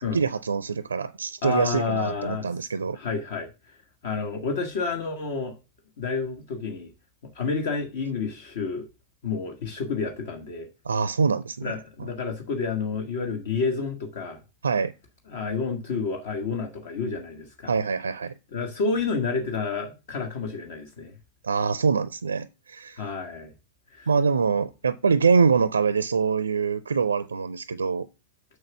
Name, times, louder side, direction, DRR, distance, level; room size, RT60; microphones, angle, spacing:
voice 1, 0.1-3.0 10.8-11.7 12.0-12.1 14.6-14.9 17.7-18.3 21.4-23.0 24.1-28.1, right 5 dB, 75° right, 0.4 m, -24 dB
voice 2, 1.4-2.5 2.9-3.8 4.0-5.5 6.0-6.9 7.3-8.8 9.2-10.7 11.6-14.4 15.3-17.7 18.5-21.1 23.0-23.5 23.9-24.1, left 4 dB, 55° left, 1.4 m, -29 dB
6.4 x 6.3 x 7.1 m
figure-of-eight pair, 90°, 0 cm